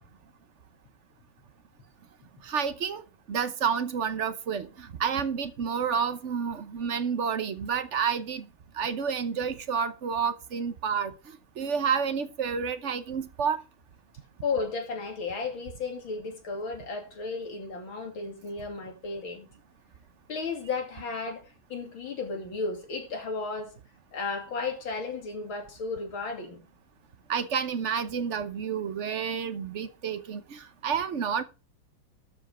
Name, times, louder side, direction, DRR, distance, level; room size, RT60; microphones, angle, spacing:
voice 1, 2.4-3.0 3.3-8.5 8.7-11.1 11.6-13.6 27.3-31.4, right 6 dB, 50° right, 0.9 m, -29 dB
voice 2, 14.4-19.5 20.3-21.4 21.7-23.7 24.1-26.6, left 4 dB, 80° left, 3.3 m, -34 dB
13.0 x 5.3 x 6.0 m
omnidirectional pair, 2.2 m